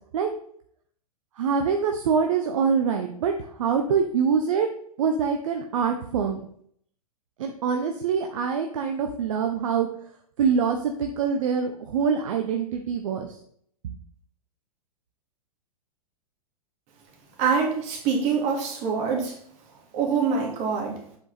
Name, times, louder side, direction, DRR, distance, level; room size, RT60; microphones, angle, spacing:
voice 1, 1.4-3.3 3.6-4.7 5.0-6.4 7.4-9.9 10.4-13.3, right 6 dB, 55° right, 5 dB, 0.8 m, -24 dB
voice 2, 17.4-19.4 19.9-21.0, right 5 dB, 35° right, 0 dB, 2.2 m, -25 dB
7.8 x 4.9 x 4.1 m, 0.64 s
figure-of-eight pair, 105°, 20 cm